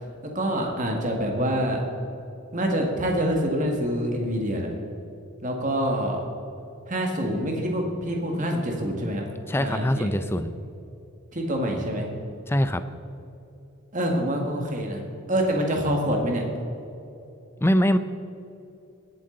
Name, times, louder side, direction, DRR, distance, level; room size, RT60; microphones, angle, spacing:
voice 1, 0.4-1.8 2.5-4.7 5.4-6.2 6.9-9.3 9.6-10.1 11.3-12.1 13.9-15.0 15.3-16.4, equal, 35° right, 1 dB, 1.8 m, -26 dB
voice 2, 9.5-10.5 12.5-12.8 17.6-18.0, equal, 10° left, 11 dB, 0.4 m, -23 dB
20.0 x 7.6 x 3.9 m, 2.9 s
head